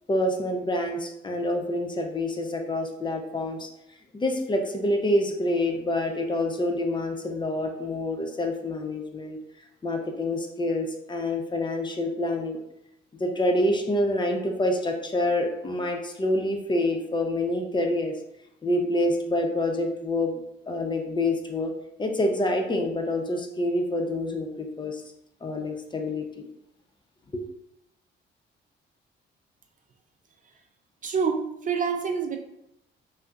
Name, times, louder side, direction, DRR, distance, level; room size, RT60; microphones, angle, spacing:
voice 1, 0.1-3.7 4.1-9.4 9.8-12.6 13.2-18.1 18.6-21.7 22.0-25.0 25.4-26.4 27.3-27.4, left 1 dB, 25° left, 3 dB, 0.5 m, -27 dB
voice 2, 31.0-32.4, right 6 dB, 40° right, 5 dB, 0.4 m, -27 dB
3.3 x 2.7 x 2.3 m, 0.82 s
cardioid pair, 90°, 20 cm